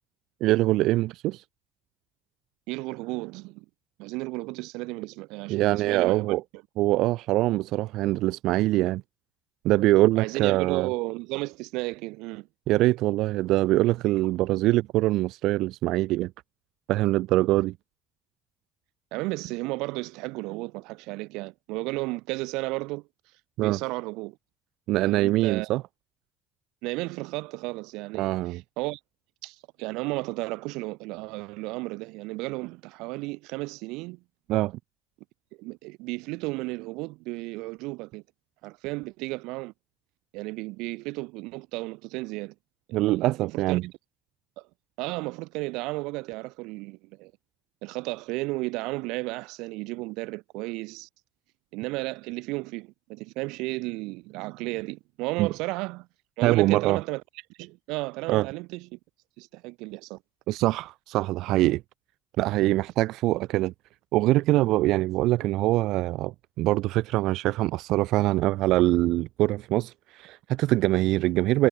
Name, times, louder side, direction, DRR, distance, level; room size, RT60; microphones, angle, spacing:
voice 1, 0.4-1.4 5.5-6.4 6.8-9.0 9.6-10.9 12.7-16.3 16.9-17.7 23.6-23.8 24.9-25.8 28.1-28.6 34.5-34.7 42.9-43.8 55.4-55.5 56.4-57.0 58.3-58.5 60.5-61.8 62.4-63.7 64.1-71.7, right 17 dB, 60° right, 0.4 m, -23 dB
voice 2, 2.7-3.6 4.0-6.4 10.2-12.5 19.1-23.1 23.6-24.4 24.9-25.7 26.8-29.0 29.4-34.2 35.6-38.2 38.6-39.7 40.3-42.5 43.1-43.8 44.6-44.7 45.0-47.3 47.8-51.1 51.7-56.1 56.4-57.2 57.6-59.0 59.4-60.2, right 23 dB, 90° right, 2.6 m, -33 dB
cardioid pair, 170°, 0 cm